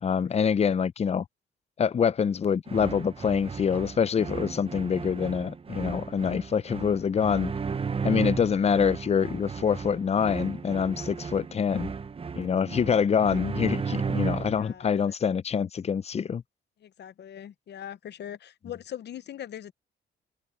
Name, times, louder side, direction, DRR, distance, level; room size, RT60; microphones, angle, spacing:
voice 1, 0.0-1.3 1.8-7.5 8.0-11.9 12.4-16.4, left 7 dB, 30° left, 0.5 m, -25 dB
sound 1, 2.7-14.7, right 5 dB, 30° right, 0.8 m, -34 dB
voice 2, 14.5-15.1 16.8-19.7, left 10 dB, 60° left, 0.9 m, -41 dB
cardioid pair, 90°, 20 cm